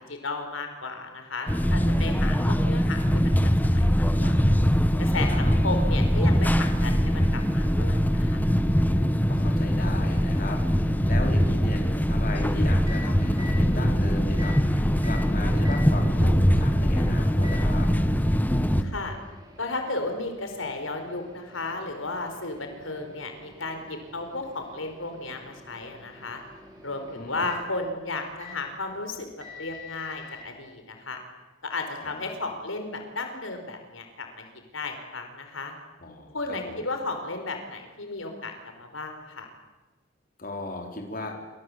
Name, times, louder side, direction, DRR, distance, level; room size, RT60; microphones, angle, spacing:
voice 1, 0.1-4.3 5.0-8.5 18.5-19.2 19.6-26.4 26.8-31.2 31.6-34.4 34.7-35.7 36.3-39.5, left 3 dB, 90° left, 5 dB, 4.7 m, -34 dB
sound 1, 1.5-18.8, equal, 10° left, 1.3 m, -22 dB
voice 2, 9.3-14.6 15.0-17.9 27.1-27.5 32.0-32.2 36.0-36.8 40.4-41.3, left 2 dB, 45° left, 2 dB, 4.9 m, -36 dB
Microwave oven, 12.7-30.5, left 3 dB, 20° right, 6.5 m, -47 dB
28.5 x 26.0 x 8.1 m, 1.1 s
head